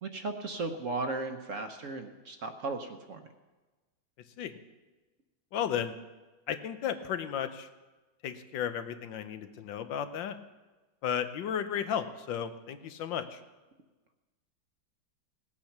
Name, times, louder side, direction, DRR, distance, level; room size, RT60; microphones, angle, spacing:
voice 1, 0.0-3.2, right 3 dB, 50° right, 6 dB, 1.1 m, -36 dB
voice 2, 5.5-5.9 6.5-7.7 8.2-10.4 11.0-13.4, left 8 dB, 85° left, 10 dB, 1.5 m, -34 dB
18.0 x 8.5 x 5.9 m, 1.2 s
omnidirectional pair, 2.0 m